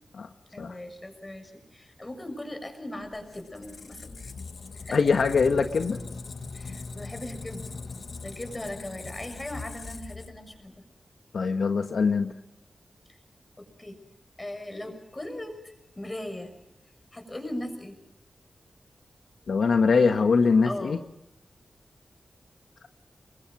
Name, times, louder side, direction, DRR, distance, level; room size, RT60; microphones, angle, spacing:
voice 1, 0.5-4.2 4.7-5.0 6.5-7.7 8.2-10.8 13.6-14.0 14.4-16.5 17.1-17.9 20.6-21.0, left 1 dB, 20° left, 6 dB, 6.8 m, -39 dB
Squeak, 3.0-10.8, left 4 dB, 65° left, 1.5 m, -41 dB
voice 2, 4.9-6.0 11.3-12.3 19.5-21.0, left 5 dB, 85° left, 5 dB, 1.5 m, -22 dB
29.0 x 23.5 x 6.3 m, 0.84 s
wide cardioid pair, 95°, 0 cm